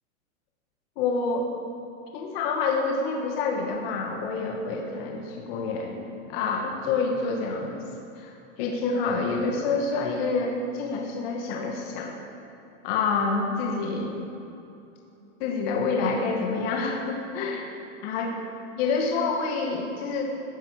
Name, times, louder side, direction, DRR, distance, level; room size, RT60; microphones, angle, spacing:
voice 1, 1.0-1.5 2.1-7.8 8.2-8.3 8.6-12.2 12.8-14.2 15.4-17.6 18.0-18.3 18.8-20.2, left 4 dB, 50° left, 1 dB, 1.7 m, -27 dB
15.5 x 10.0 x 5.0 m, 2.8 s
supercardioid pair, 160°, 39 cm